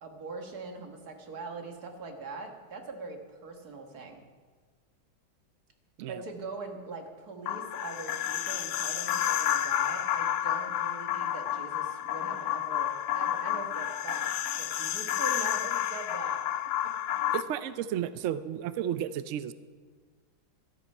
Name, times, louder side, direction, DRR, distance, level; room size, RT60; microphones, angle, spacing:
voice 1, 0.0-4.2 6.1-16.4 16.8-16.9 17.3-17.4, right 3 dB, 55° right, 3 dB, 2.0 m, -42 dB
sound 1, 7.5-17.4, left 11 dB, 70° left, 1.0 m, -30 dB
voice 2, 17.3-19.5, right 10 dB, 85° right, 13 dB, 0.6 m, -33 dB
13.5 x 13.0 x 5.4 m, 1.5 s
omnidirectional pair, 2.0 m